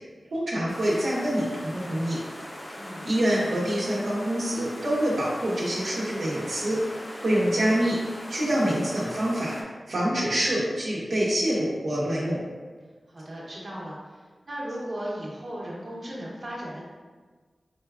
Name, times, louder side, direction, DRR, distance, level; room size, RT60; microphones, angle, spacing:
voice 1, 0.3-2.2 3.0-6.8 7.2-8.0 8.3-12.4, right 1 dB, 85° right, -7 dB, 1.0 m, -26 dB
sound 1, 0.7-9.6, equal, 40° left, 0.7 m, -40 dB
voice 2, 2.7-3.1 3.4-3.5 13.1-16.9, equal, 50° right, -6 dB, 1.0 m, -36 dB
4.4 x 3.4 x 2.4 m, 1.4 s
wide cardioid pair, 95°, 0 cm